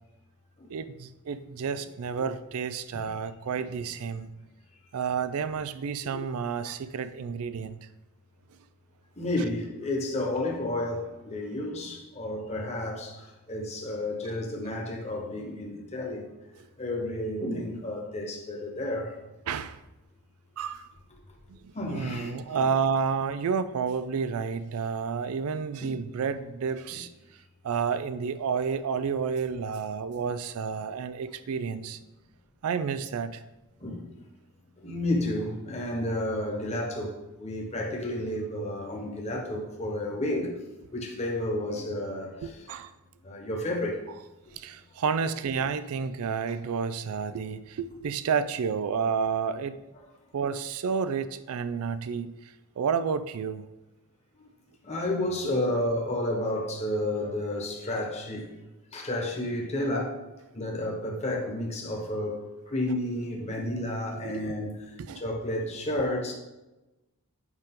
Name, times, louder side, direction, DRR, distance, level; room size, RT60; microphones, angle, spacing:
voice 1, 0.7-4.3 4.9-7.8 14.3-14.4 19.5-19.8 20.6-20.9 21.6-27.1 27.6-32.0 32.6-33.4 42.4-42.9 44.5-49.7 50.3-52.4 52.8-53.6 64.2-64.5 65.0-65.2, right 6 dB, 75° right, 0.4 m, -30 dB
voice 2, 9.2-16.3 16.8-19.2 21.7-22.6 25.8-25.9 26.9-27.0 33.8-34.0 34.8-40.6 40.9-42.6 43.2-44.0 54.4-54.5 54.8-58.5 58.9-60.2 60.5-62.4 62.7-64.7 65.1-66.3, left 1 dB, 30° left, 1.2 m, -31 dB
8.1 x 5.1 x 3.7 m
head